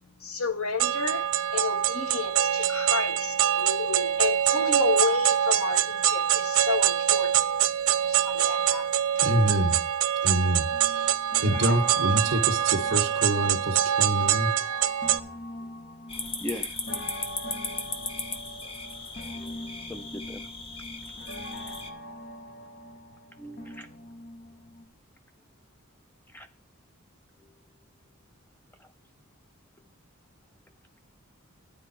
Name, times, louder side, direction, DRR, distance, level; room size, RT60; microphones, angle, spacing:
voice 1, 0.2-7.3 8.0-9.2, left 4 dB, 80° left, 1.3 m, -31 dB
sound 1, 0.8-15.2, right 10 dB, 90° right, 0.6 m, -24 dB
voice 2, 9.2-9.8 10.2-11.1 11.4-14.5 16.5-16.6, right 1 dB, 60° right, 1.7 m, -26 dB
sound 2, 10.7-24.9, equal, 45° left, 1.4 m, -41 dB
sound 3, 16.1-21.9, left 3 dB, 25° left, 0.9 m, -37 dB
voice 3, 19.3-20.4 23.4-23.9 26.3-26.5, left 1 dB, 10° left, 0.5 m, -39 dB
11.5 x 9.2 x 4.5 m
head